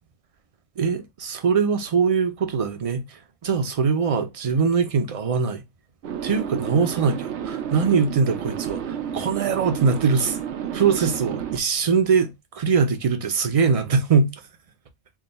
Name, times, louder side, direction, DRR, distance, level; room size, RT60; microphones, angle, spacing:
voice 1, 0.8-5.6 6.2-10.4 10.7-14.3, right 5 dB, 45° right, 0.5 m, -22 dB
sound 1, 6.0-11.6, right 9 dB, 85° right, 0.9 m, -31 dB
3.5 x 2.2 x 4.0 m
omnidirectional pair, 1.1 m